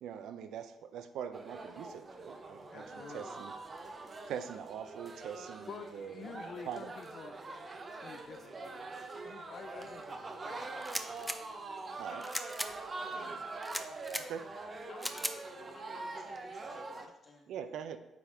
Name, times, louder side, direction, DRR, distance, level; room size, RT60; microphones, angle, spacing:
voice 1, 0.0-3.5 3.8-3.9 4.3-6.3 6.6-6.9 12.0-12.3 13.1-13.5 14.1-14.5 17.5-18.0, right 8 dB, 80° right, 10 dB, 0.4 m, -43 dB
sound 1, 1.3-17.1, right 3 dB, 35° right, 0.7 m, -44 dB
voice 2, 2.7-3.4 5.7-7.4 7.9-8.9 9.2-11.3, left 6 dB, 60° left, 8 dB, 0.4 m, -49 dB
sound 2, 10.8-11.4 12.2-12.7 13.6-14.2 15.0-15.4, equal, ahead, 0.5 m, -37 dB
voice 3, 14.9-17.5, left 2 dB, 45° left, 1 dB, 1.4 m, -56 dB
9.1 x 3.5 x 3.7 m, 0.94 s
cardioid pair, 90°, 0 cm